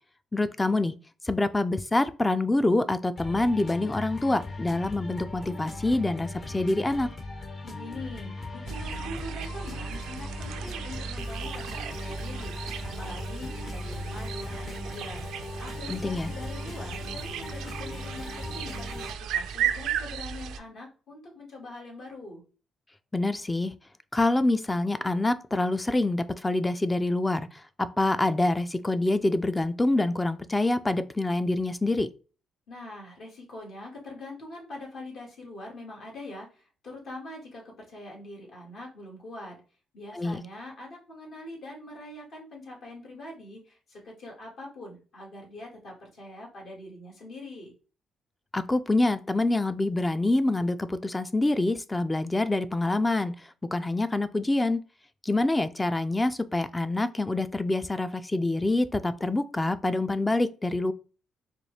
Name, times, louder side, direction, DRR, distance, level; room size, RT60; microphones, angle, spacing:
voice 1, 0.3-1.0 1.2-7.1 15.9-16.3 23.1-23.7 24.1-32.1 40.1-40.4 48.5-54.8 55.2-60.9, left 2 dB, 15° left, 0.3 m, -26 dB
sound 1, 3.2-19.1, left 2 dB, 40° left, 0.7 m, -39 dB
voice 2, 7.6-22.4 32.7-39.6 39.9-47.7, left 1 dB, 70° left, 1.7 m, -43 dB
sound 2, 8.7-20.6, right 7 dB, 85° right, 0.3 m, -35 dB
4.1 x 2.3 x 3.2 m
cardioid pair, 75°, 0 cm